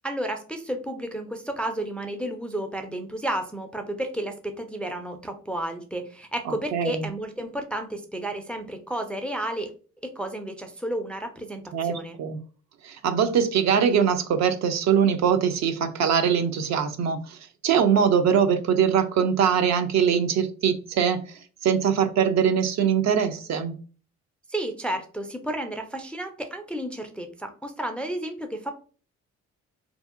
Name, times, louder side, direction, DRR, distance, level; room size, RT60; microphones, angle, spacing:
voice 1, 0.0-9.7 10.0-12.2 24.5-28.7, right 1 dB, 5° left, 0.3 m, -32 dB
voice 2, 6.7-7.1 11.7-12.4 12.8-17.4 17.6-21.2 21.6-23.8, right 7 dB, 65° right, 0.5 m, -22 dB
2.6 x 2.6 x 2.4 m
cardioid pair, 90°, 30 cm